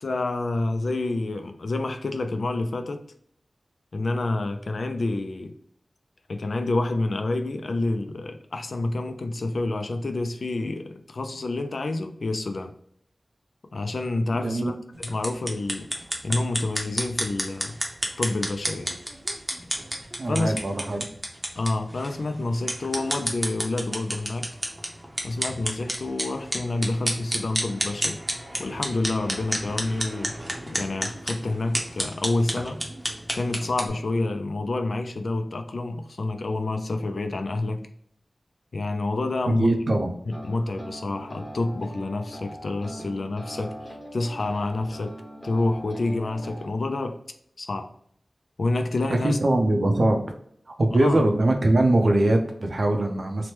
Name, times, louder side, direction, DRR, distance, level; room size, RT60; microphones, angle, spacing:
voice 1, 0.0-3.0 3.9-5.5 6.3-12.7 13.7-15.9 16.2-17.8 18.2-19.0 20.3-20.6 21.6-24.6 25.2-28.2 28.6-30.4 30.7-32.8 33.3-37.9 38.7-39.7 40.3-45.2 45.4-47.2 47.6-47.9 48.6-49.4 50.9-51.2, left 2 dB, 75° left, 0.3 m, -28 dB
voice 2, 14.3-14.7 20.2-21.1 39.5-40.1 49.1-50.2 50.8-53.5, right 1 dB, 60° right, 0.5 m, -22 dB
sound 1, 14.9-33.9, right 1 dB, 20° right, 0.7 m, -31 dB
sound 2, 40.3-46.7, equal, 15° left, 1.0 m, -41 dB
2.9 x 2.1 x 3.2 m
wide cardioid pair, 80°, 0 cm